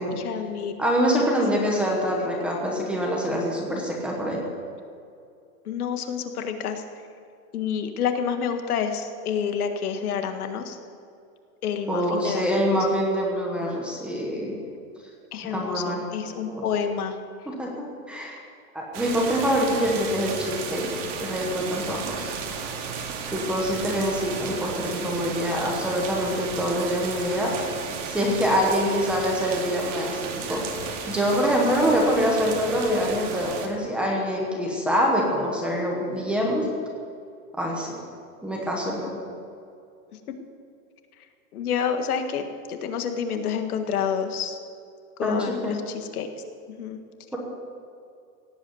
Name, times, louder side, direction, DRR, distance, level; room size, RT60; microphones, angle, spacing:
voice 1, 0.1-0.7 1.5-1.6 5.7-6.8 7.5-10.8 11.6-12.7 15.3-17.2 41.5-44.6 45.2-46.3 46.7-47.0, left 7 dB, 85° left, 7 dB, 1.8 m, -28 dB
voice 2, 0.8-4.4 11.9-14.6 15.4-16.0 16.4-16.6 17.5-18.4 18.7-20.9 21.2-22.3 23.3-27.6 28.0-30.8 31.1-36.7 37.6-38.0 38.4-39.2 45.2-45.8, equal, 5° right, -2 dB, 1.0 m, -25 dB
sound 1, 18.9-33.7, right 6 dB, 55° right, 2.3 m, -34 dB
17.0 x 8.4 x 7.9 m, 2.5 s
supercardioid pair, 180°, 44 cm